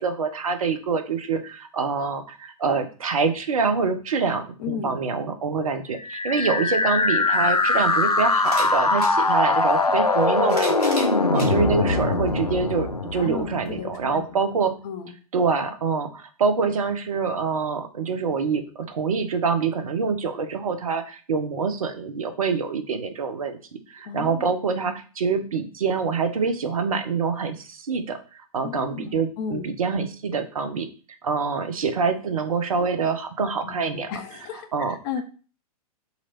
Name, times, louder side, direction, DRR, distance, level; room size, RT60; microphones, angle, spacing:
voice 1, 0.0-10.9 11.3-14.7 15.3-23.6 23.9-30.9 31.2-34.1 34.7-35.0, right 5 dB, 65° right, 8 dB, 0.7 m, -25 dB
voice 2, 4.6-5.0 13.1-14.2 14.8-15.1 24.0-24.4 28.6-29.7 33.6-35.2, left 7 dB, 30° left, 8 dB, 0.6 m, -34 dB
sound 1, 6.0-13.9, left 3 dB, 90° left, 0.6 m, -22 dB
sound 2, 7.0-7.1 8.4-9.2 10.2-11.5 12.3-12.4 13.7-13.8, equal, 75° left, 1.9 m, -35 dB
4.0 x 3.0 x 4.3 m, 0.37 s
figure-of-eight pair, 110°, 19 cm